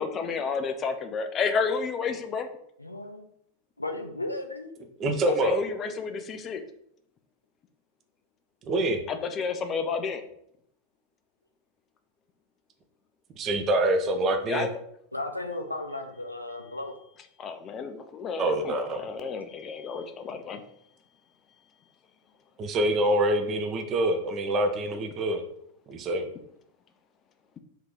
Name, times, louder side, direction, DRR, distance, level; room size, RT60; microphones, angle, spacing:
voice 1, 0.0-2.5 5.4-6.6 9.1-10.2 14.5-14.7 17.4-18.8 19.0-20.6, left 5 dB, 30° left, 8 dB, 0.4 m, -30 dB
voice 2, 2.8-3.3 3.8-4.7 15.1-17.0, left 2 dB, 85° left, 5 dB, 0.5 m, -35 dB
voice 3, 5.0-5.6 8.7-9.0 13.4-14.7 18.4-19.0 22.6-25.4 25.9-26.3, right 1 dB, 30° right, 6 dB, 0.5 m, -25 dB
2.8 x 2.8 x 3.6 m, 0.71 s
figure-of-eight pair, 90°, 0 cm